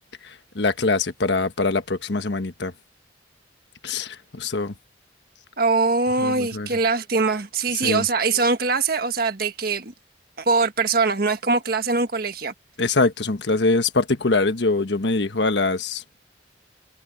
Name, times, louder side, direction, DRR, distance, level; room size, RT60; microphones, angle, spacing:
voice 1, 0.2-2.7 3.8-4.7 6.2-6.7 7.8-8.1 12.8-16.0, left 3 dB, 70° left, 1.3 m, -23 dB
voice 2, 5.6-9.9 10.4-12.5, right 4 dB, 55° right, 1.6 m, -22 dB
head